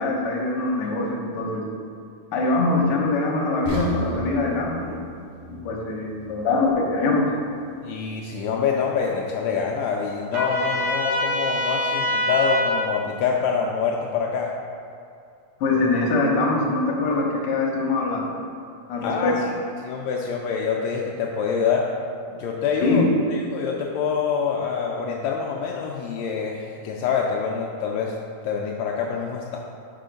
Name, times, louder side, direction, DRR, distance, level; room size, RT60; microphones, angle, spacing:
voice 1, 0.0-1.7 2.3-5.0 5.5-7.3 15.6-18.4 18.9-19.3 22.8-23.1, left 3 dB, 65° left, -2 dB, 1.4 m, -23 dB
sound 1, 3.7-7.7 8.1-8.2 8.8-8.9, right 1 dB, 70° right, 1.8 m, -36 dB
voice 2, 7.8-14.5 19.0-19.5 19.8-21.9 22.3-23.0 23.3-28.1 28.4-29.6, left 6 dB, 85° left, -1 dB, 1.5 m, -26 dB
Trumpet, 10.3-12.8, left 1 dB, 85° right, 2.8 m, -24 dB
5.7 x 4.5 x 5.1 m, 2.4 s
omnidirectional pair, 3.6 m